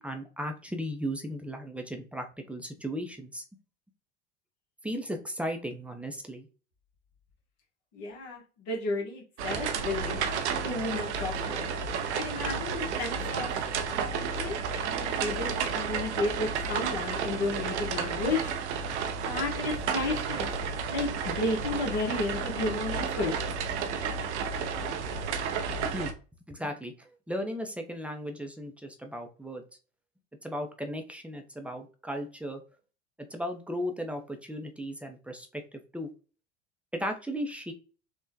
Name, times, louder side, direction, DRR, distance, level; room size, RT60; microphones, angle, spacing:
voice 1, 0.0-3.4 4.8-6.5 25.9-26.1 26.5-29.6 30.4-32.6 33.2-35.6 35.9-36.1 36.9-37.7, equal, 5° right, 4 dB, 0.5 m, -36 dB
voice 2, 7.9-10.3 10.6-11.7 12.1-13.5 13.9-18.5 19.3-20.5 20.9-23.3, left 2 dB, 55° left, 0 dB, 1.0 m, -33 dB
sound 1, 9.4-26.1, right 6 dB, 85° right, 0.5 m, -32 dB
3.6 x 2.1 x 2.6 m, 0.36 s
hypercardioid pair, 85°, 34 cm